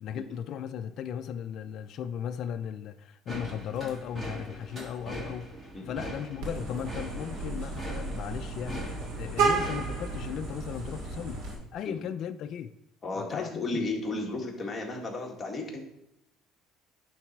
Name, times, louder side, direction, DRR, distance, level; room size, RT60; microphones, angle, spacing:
voice 1, 0.0-5.5 5.8-8.9 9.2-11.4 11.7-12.7 13.1-13.8, left 8 dB, 50° left, 0.4 m, -36 dB
sound 1, 3.3-10.4, right 1 dB, 20° right, 1.8 m, -41 dB
Vehicle horn car horn honking, 6.4-11.5, right 4 dB, 90° right, 2.5 m, -32 dB
voice 2, 13.0-15.8, left 2 dB, 20° left, 1.8 m, -34 dB
11.0 x 4.0 x 4.6 m
cardioid pair, 130°, 0 cm